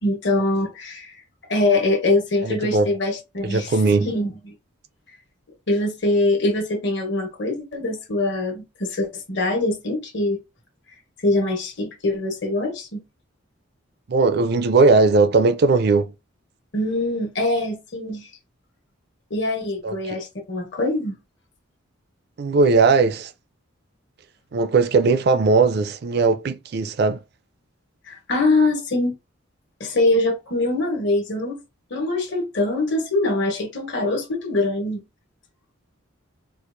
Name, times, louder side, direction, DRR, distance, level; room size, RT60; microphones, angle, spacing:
voice 1, 0.0-1.1 1.5-4.5 5.7-10.4 11.2-13.0 16.7-18.3 19.3-21.2 28.0-29.2 29.8-31.5 31.9-35.0, left 2 dB, 55° left, 1.4 m, -23 dB
voice 2, 2.4-2.9 3.4-4.1 14.1-16.1 19.8-20.2 22.4-23.3 24.5-27.2, right 3 dB, 50° right, 0.4 m, -18 dB
4.5 x 2.4 x 2.6 m
head